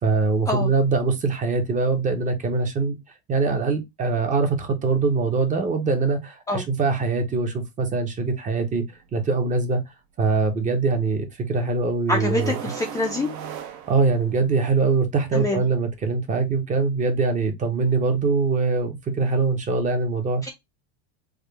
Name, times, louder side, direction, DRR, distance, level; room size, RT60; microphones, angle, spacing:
voice 1, 0.0-3.0 3.3-8.8 9.1-9.8 10.2-12.6 13.9-20.4, right 4 dB, 20° right, 0.7 m, -23 dB
sound 1, 8.9-9.0 12.1-14.7, right 8 dB, 55° right, 0.7 m, -36 dB
voice 2, 12.1-13.3 15.3-15.6 20.4-20.5, left 2 dB, 10° left, 0.4 m, -25 dB
3.6 x 2.1 x 3.2 m
supercardioid pair, 135°, 35 cm